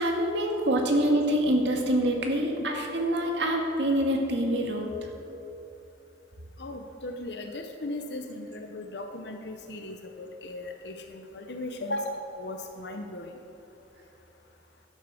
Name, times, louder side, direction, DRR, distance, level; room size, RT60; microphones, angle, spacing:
voice 1, 0.0-4.9, right 1 dB, 80° right, 1 dB, 2.0 m, -25 dB
voice 2, 6.6-13.3, left 1 dB, 70° left, 4 dB, 0.9 m, -37 dB
12.0 x 9.4 x 7.0 m, 3.0 s
head